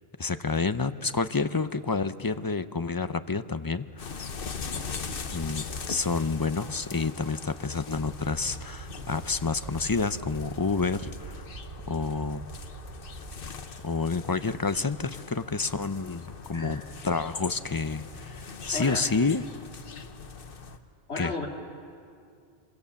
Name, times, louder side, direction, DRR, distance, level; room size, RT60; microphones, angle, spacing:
voice 1, 0.2-4.0 5.3-11.4 11.9-12.4 13.8-19.4 21.2-21.3, left 4 dB, 25° left, 12 dB, 0.5 m, -29 dB
sound 1, 4.0-20.8, left 5 dB, 55° left, 1.2 m, -41 dB
sound 2, 7.9-13.5, right 3 dB, 50° right, 1.3 m, -43 dB
voice 2, 16.5-16.8 18.7-19.1 21.1-21.5, left 3 dB, 80° left, 0 dB, 2.6 m, -34 dB
27.5 x 24.0 x 7.1 m, 2.3 s
omnidirectional pair, 1.1 m